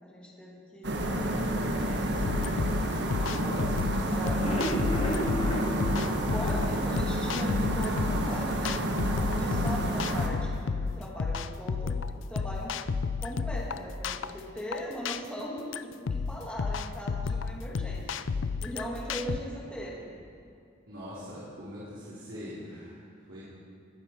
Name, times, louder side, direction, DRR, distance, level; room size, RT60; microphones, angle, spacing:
voice 1, 0.0-2.3 4.1-4.6 5.1-5.8 6.2-12.7 13.2-18.2 18.6-20.2 22.1-22.2, equal, 5° left, -4 dB, 2.1 m, -40 dB
sound 1, 0.8-10.3, right 1 dB, 65° right, 1.4 m, -30 dB
sound 2, 2.2-19.4, left 5 dB, 70° left, 0.4 m, -32 dB
voice 2, 3.2-4.8 20.9-23.4, equal, 85° right, -10 dB, 3.7 m, -42 dB
sound 3, 4.4-7.5 7.8-7.9 8.3-8.4 8.8-8.9, equal, 30° left, 1.7 m, -33 dB
20.5 x 9.8 x 4.5 m, 2.5 s
head